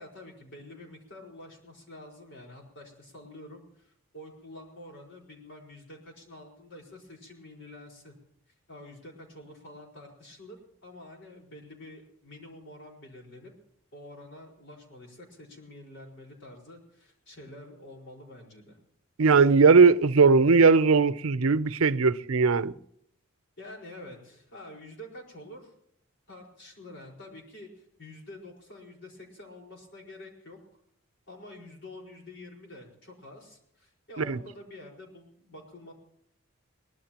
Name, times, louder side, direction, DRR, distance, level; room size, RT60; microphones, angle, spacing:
voice 1, 0.0-8.1 8.7-13.5 13.9-18.8 23.6-25.7 26.3-30.8 31.3-35.9, left 1 dB, 60° left, 4.9 m, -47 dB
voice 2, 19.2-22.7 34.2-34.4, right 4 dB, 85° right, 0.6 m, -19 dB
23.0 x 18.5 x 3.0 m
head